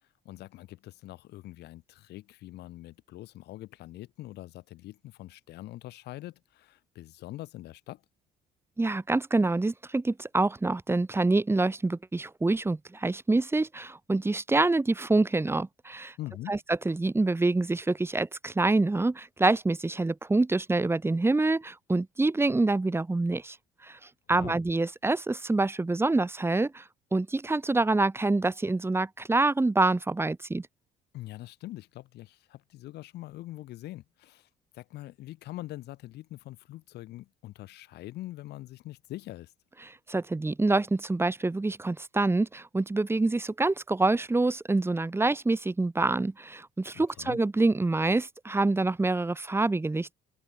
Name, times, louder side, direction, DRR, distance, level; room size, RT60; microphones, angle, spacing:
voice 1, 0.2-8.0 16.2-16.6 24.3-24.5 31.1-34.5 34.7-39.5 46.9-47.4, left 16 dB, 80° left, 4.9 m, -43 dB
voice 2, 8.8-16.1 16.5-23.6 23.8-24.0 24.3-26.8 27.1-30.7 39.8-50.1, right 2 dB, 15° right, 3.1 m, -26 dB
open air
cardioid pair, 110°, 17 cm